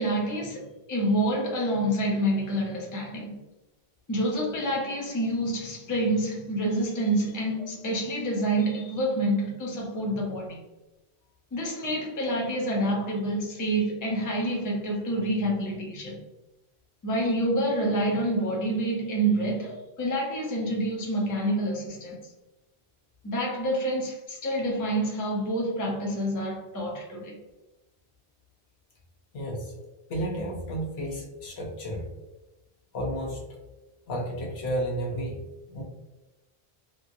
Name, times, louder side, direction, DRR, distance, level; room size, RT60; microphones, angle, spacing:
voice 1, 0.0-3.3 4.1-10.6 11.5-16.2 17.0-22.2 23.2-27.4, right 1 dB, 20° left, -3 dB, 0.6 m, -27 dB
voice 2, 29.3-29.7 30.1-32.1 32.9-33.4 34.1-35.8, right 1 dB, 70° left, -1 dB, 1.0 m, -32 dB
2.9 x 2.5 x 2.6 m, 1.0 s
omnidirectional pair, 1.1 m